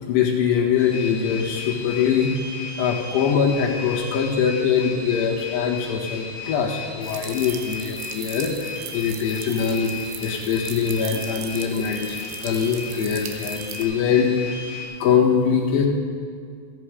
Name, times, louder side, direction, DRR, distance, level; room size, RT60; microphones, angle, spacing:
voice 1, 0.1-2.3 2.8-9.9 10.2-14.5 15.0-15.9, left 7 dB, 70° left, -3 dB, 3.6 m, -22 dB
sound 1, 0.8-14.8, left 4 dB, 25° left, 2.3 m, -36 dB
sound 2, 7.0-13.8, right 9 dB, 85° right, 3.1 m, -38 dB
14.5 x 10.5 x 4.9 m, 2.2 s
omnidirectional pair, 5.1 m